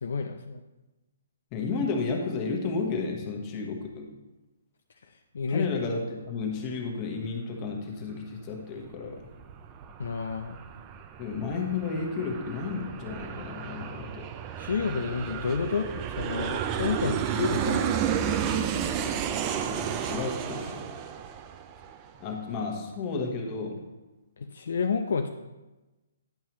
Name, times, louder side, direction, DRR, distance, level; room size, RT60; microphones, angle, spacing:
voice 1, 0.0-0.6 5.0-5.7 10.0-10.6 14.6-18.0 24.4-25.3, left 5 dB, 65° left, 5 dB, 0.4 m, -30 dB
voice 2, 1.5-4.1 5.5-9.3 11.2-14.3 19.6-21.0 22.2-23.8, left 4 dB, 30° left, 1 dB, 1.2 m, -32 dB
Aircraft, 9.0-22.2, right 8 dB, 25° right, 0.5 m, -32 dB
10.5 x 5.5 x 3.0 m, 1.1 s
hypercardioid pair, 140°, 0 cm